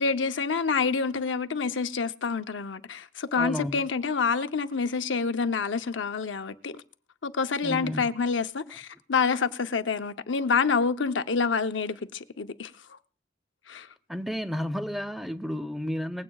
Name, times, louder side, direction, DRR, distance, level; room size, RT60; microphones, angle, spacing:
voice 1, 0.0-6.8 7.2-12.7 13.7-13.9, left 5 dB, 75° left, 0.7 m, -27 dB
voice 2, 3.3-3.8 7.6-8.1 14.1-16.2, equal, ahead, 0.5 m, -32 dB
19.5 x 16.0 x 2.3 m
head